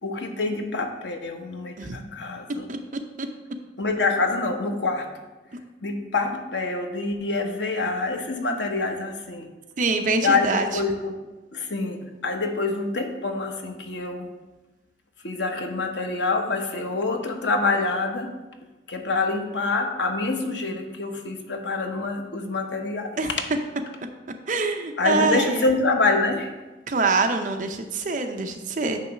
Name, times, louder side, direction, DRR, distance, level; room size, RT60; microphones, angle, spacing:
voice 1, 0.0-2.7 3.8-5.1 5.8-9.5 10.2-11.1 11.5-14.3 15.2-18.3 18.9-23.2 25.0-26.5, left 3 dB, 90° left, 4 dB, 0.9 m, -26 dB
voice 2, 9.8-10.7 23.2-23.3 24.5-25.7 26.9-29.0, right 3 dB, 45° right, 5 dB, 0.6 m, -24 dB
9.0 x 3.2 x 5.8 m, 1.1 s
head